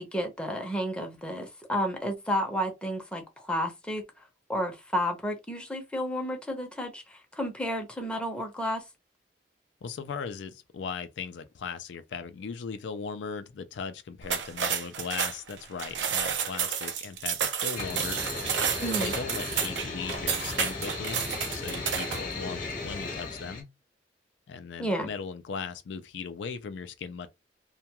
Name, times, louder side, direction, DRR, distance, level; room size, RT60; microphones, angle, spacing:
voice 1, 0.0-4.0 4.5-8.8 18.8-19.1 24.8-25.1, equal, 5° left, 0.6 m, -31 dB
voice 2, 9.8-18.2 18.9-23.7 24.5-27.3, left 5 dB, 75° left, 0.4 m, -38 dB
sound 1, 14.2-22.3, right 7 dB, 80° right, 0.5 m, -31 dB
sound 2, 17.8-23.6, left 3 dB, 50° left, 0.8 m, -36 dB
2.2 x 2.2 x 2.8 m
head